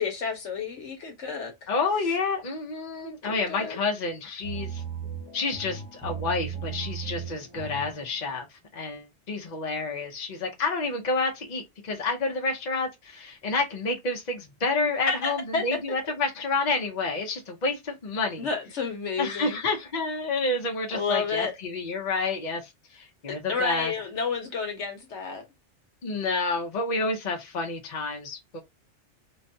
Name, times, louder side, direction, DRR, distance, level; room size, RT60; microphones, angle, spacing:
voice 1, 0.0-1.7 3.0-3.8 15.1-15.6 18.4-19.6 20.9-21.5 23.5-25.4, left 5 dB, 75° left, 1.3 m, -30 dB
voice 2, 1.7-4.8 5.3-8.5 8.7-18.5 19.2-22.6 22.9-23.9 26.0-28.6, left 3 dB, 40° left, 0.8 m, -29 dB
sound 1, 4.4-8.1, right 7 dB, 5° left, 0.8 m, -36 dB
4.4 x 2.2 x 2.6 m
omnidirectional pair, 1.2 m